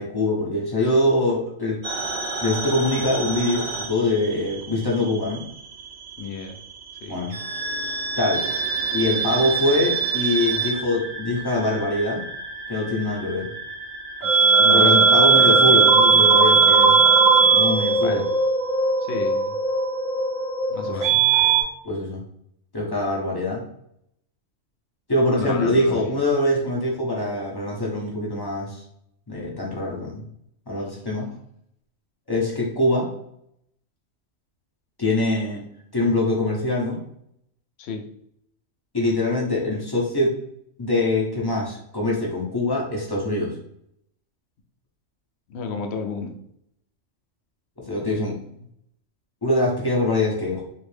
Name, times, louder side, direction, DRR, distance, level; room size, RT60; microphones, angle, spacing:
voice 1, 0.0-1.8 2.4-5.4 7.1-7.4 8.2-8.4 8.9-12.2 12.7-13.5 14.7-16.9 17.5-18.2 20.8-21.1 21.8-22.2 22.7-23.6 25.1-28.8 29.3-30.2 30.7-31.3 32.3-33.1 35.0-35.6 35.9-37.0 38.9-40.3 40.8-43.6 47.9-48.4 49.4-50.6, left 1 dB, 25° left, -3 dB, 0.6 m, -23 dB
sound 1, 1.8-4.7 4.9-6.1 7.3-21.6, right 4 dB, 55° right, 0.5 m, -20 dB
voice 2, 4.4-4.9 6.2-6.6 7.0-7.1 14.6-15.5 18.0-18.2 19.1-19.6 20.7-21.2 25.4-26.0 37.8-38.0 45.5-46.3, left 4 dB, 65° left, 4 dB, 0.7 m, -32 dB
3.1 x 2.6 x 3.2 m, 0.72 s
omnidirectional pair, 1.4 m